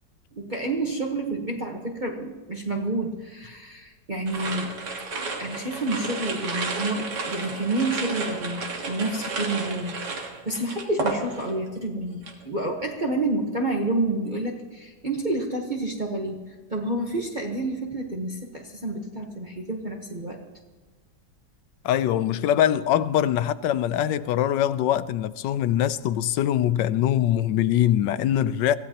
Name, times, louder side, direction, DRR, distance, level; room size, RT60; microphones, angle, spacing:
voice 1, 0.3-4.7 5.4-8.6 8.9-16.4 16.7-20.4, right 2 dB, 30° right, 1.2 m, -29 dB
sound 1, 4.3-11.7 12.0-12.4, right 3 dB, 70° right, 2.2 m, -32 dB
voice 2, 21.8-28.8, left 11 dB, 80° left, 1.3 m, -23 dB
23.0 x 16.0 x 2.9 m
omnidirectional pair, 1.9 m